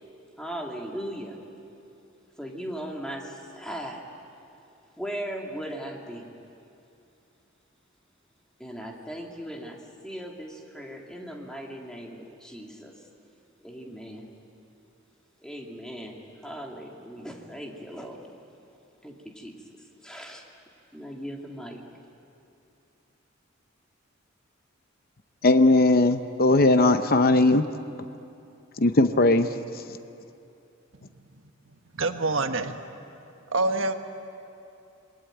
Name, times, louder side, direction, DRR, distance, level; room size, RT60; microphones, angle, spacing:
voice 1, 0.4-1.4 2.4-4.0 5.0-6.3 8.6-12.9 13.6-14.3 15.4-16.2 16.4-18.4 19.0-19.6 20.0-20.4 20.9-21.8, equal, 5° left, 2.7 m, -38 dB
voice 2, 25.4-27.7 28.8-29.5, left 2 dB, 45° left, 0.8 m, -19 dB
voice 3, 31.9-32.8 33.5-33.9, right 2 dB, 70° right, 1.4 m, -25 dB
27.0 x 22.0 x 9.3 m
head